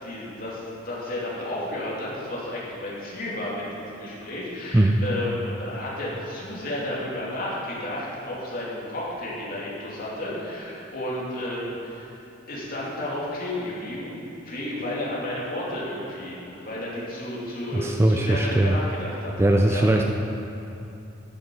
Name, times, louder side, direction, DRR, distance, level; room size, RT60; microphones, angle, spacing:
voice 1, 0.0-12.1 12.5-14.2 14.4-19.3 19.7-19.9, left 1 dB, 45° left, -6 dB, 2.8 m, -32 dB
voice 2, 17.7-18.8 19.4-20.1, right 1 dB, 10° right, 2 dB, 0.4 m, -20 dB
12.0 x 8.0 x 5.5 m, 2.9 s
head